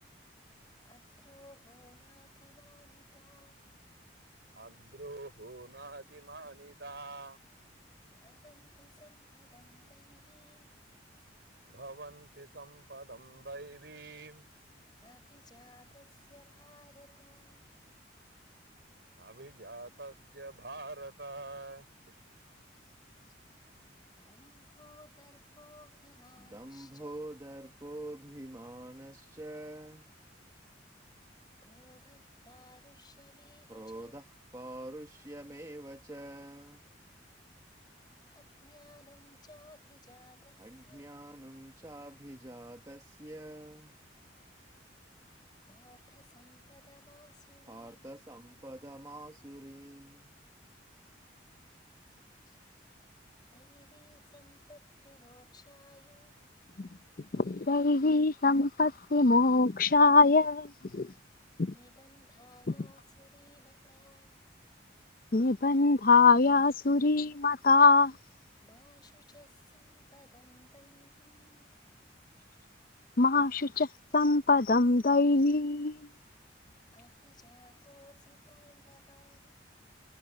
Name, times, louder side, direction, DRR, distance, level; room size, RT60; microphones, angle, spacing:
voice 1, 0.8-3.6 8.1-10.8 15.0-17.7 22.7-23.3 24.2-27.2 31.6-34.3 38.3-41.1 45.7-48.1 52.0-52.2 52.4-52.6 53.5-56.4 61.7-64.4 68.6-71.9 76.9-79.5, left 1 dB, 25° left, 5.2 m, -60 dB
voice 2, 4.5-7.4 11.7-14.5 19.2-22.2, right 2 dB, 65° right, 4.1 m, -46 dB
voice 3, 26.4-30.1 33.7-36.8 40.6-43.9 47.7-50.3, right 1 dB, 20° right, 1.5 m, -46 dB
voice 4, 57.3-61.1 61.6-61.7 65.3-68.2 73.2-73.9 74.1-76.0, left 3 dB, 50° left, 0.6 m, -23 dB
head